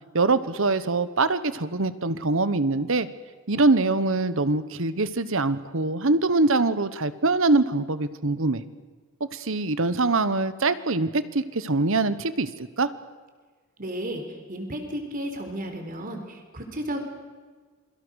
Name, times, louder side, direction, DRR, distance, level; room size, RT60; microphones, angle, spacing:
voice 1, 0.1-3.1 3.5-8.6 9.3-12.9, right 3 dB, 65° right, 13 dB, 1.2 m, -23 dB
voice 2, 13.8-14.2 14.5-17.0, right 1 dB, 40° right, 5 dB, 4.0 m, -33 dB
28.0 x 23.0 x 6.5 m, 1.4 s
head